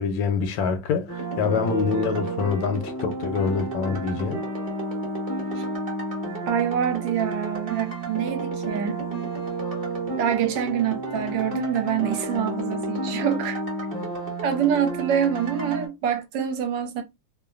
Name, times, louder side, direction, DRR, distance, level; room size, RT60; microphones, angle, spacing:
voice 1, 0.0-4.4 8.7-8.8, left 6 dB, 80° left, 1.3 m, -25 dB
sound 1, 1.1-15.9, right 2 dB, 25° right, 0.8 m, -31 dB
voice 2, 6.4-9.0 10.2-13.6 14.4-17.0, right 8 dB, 75° right, 1.2 m, -25 dB
3.1 x 2.2 x 2.3 m
omnidirectional pair, 2.0 m